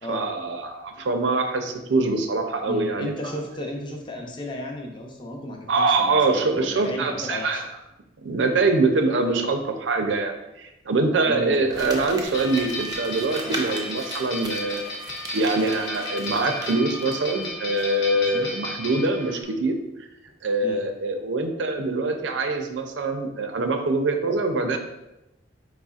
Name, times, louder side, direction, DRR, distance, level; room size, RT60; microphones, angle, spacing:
voice 1, 0.1-3.4 5.7-7.6 8.2-14.8 15.3-19.8 20.4-24.8, right 3 dB, 75° right, 6 dB, 0.5 m, -24 dB
voice 2, 2.7-7.6 9.3-9.4 11.3-11.6 13.4-13.6 18.1-18.5 20.6-20.8, left 1 dB, 25° left, 1 dB, 0.6 m, -34 dB
Crumpling crinkling, 11.7-17.5 17.8-17.9, right 2 dB, 20° right, 0.5 m, -37 dB
sound 1, 12.3-19.4, left 1 dB, 75° left, 0.9 m, -34 dB
4.5 x 4.0 x 2.4 m, 0.94 s
head